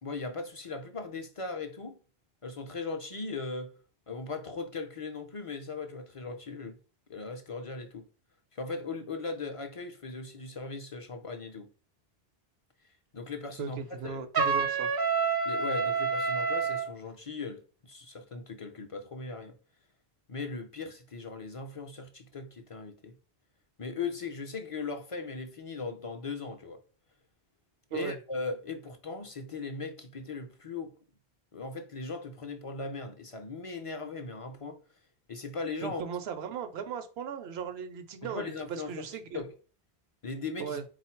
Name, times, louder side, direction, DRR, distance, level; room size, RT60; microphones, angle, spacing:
voice 1, 0.0-2.0 2.4-3.7 4.1-6.8 7.1-8.1 8.5-11.7 13.1-14.2 15.5-19.5 20.3-23.1 23.8-26.8 27.9-30.9 31.5-34.8 35.3-36.0 38.2-39.0 39.3-39.5 40.2-40.8, left 4 dB, 45° left, 0.5 m, -38 dB
voice 2, 13.6-14.9 27.9-28.2 35.8-39.4 40.6-40.8, right 7 dB, 90° right, 0.9 m, -37 dB
Trumpet, 14.3-16.9, right 5 dB, 35° right, 0.3 m, -28 dB
3.9 x 2.3 x 4.3 m
omnidirectional pair, 1.0 m